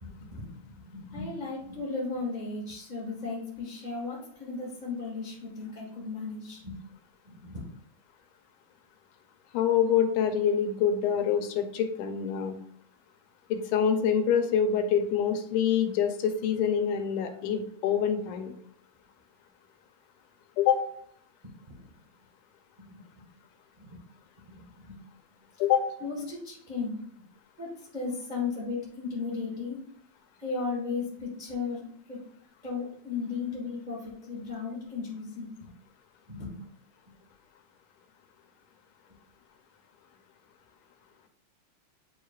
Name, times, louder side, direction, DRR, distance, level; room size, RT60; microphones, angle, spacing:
voice 1, 0.0-6.8 7.2-7.7 21.7-21.8 22.9-23.0 23.8-24.0 24.4-25.0 26.0-27.0 27.6-29.8 30.4-31.8 32.1-32.2 32.6-35.7 36.3-36.6, left 4 dB, 30° right, -5 dB, 0.9 m, -36 dB
voice 2, 9.5-12.6 13.5-18.5 20.6-20.8 25.6-25.9, left 8 dB, 80° left, 7 dB, 2.1 m, -26 dB
8.5 x 4.7 x 2.4 m, 0.65 s
omnidirectional pair, 3.5 m